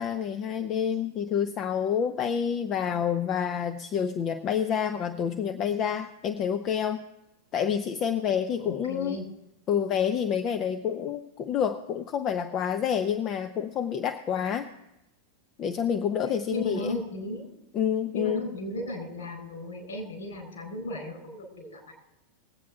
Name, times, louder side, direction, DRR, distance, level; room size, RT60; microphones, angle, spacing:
voice 1, 0.0-7.1 7.5-9.2 9.7-14.7 15.6-17.0 17.7-18.5, left 8 dB, 35° left, 7 dB, 0.6 m, -28 dB
voice 2, 8.6-9.2 16.5-17.5 18.1-21.9, left 1 dB, 65° left, 2 dB, 4.1 m, -35 dB
21.0 x 8.5 x 3.5 m, 0.91 s
figure-of-eight pair, 90°, 0 cm